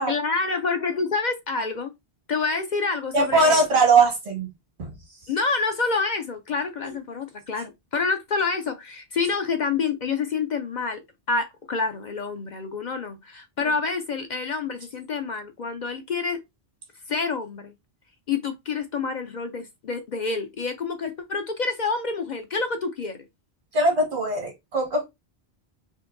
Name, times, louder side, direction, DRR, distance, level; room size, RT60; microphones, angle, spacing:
voice 1, 0.1-1.9 2.3-3.6 5.3-11.0 11.3-16.4 17.1-17.7 18.3-23.2, left 4 dB, 50° left, 0.6 m, -27 dB
voice 2, 3.1-4.5 4.8-4.9 13.6-13.7 23.7-25.0, right 3 dB, 80° right, 1.9 m, -20 dB
4.4 x 2.6 x 2.5 m
omnidirectional pair, 1.1 m